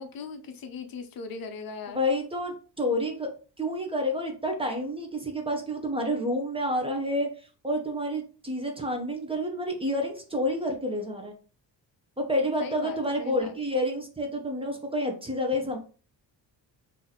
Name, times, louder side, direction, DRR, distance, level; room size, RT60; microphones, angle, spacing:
voice 1, 0.0-2.0 12.6-13.5, left 4 dB, 55° left, 6 dB, 0.6 m, -39 dB
voice 2, 1.9-3.3 3.6-7.3 7.6-11.3 12.2-15.8, left 1 dB, 15° right, 2 dB, 0.6 m, -29 dB
2.9 x 2.7 x 4.0 m, 0.38 s
cardioid pair, 140°, 44 cm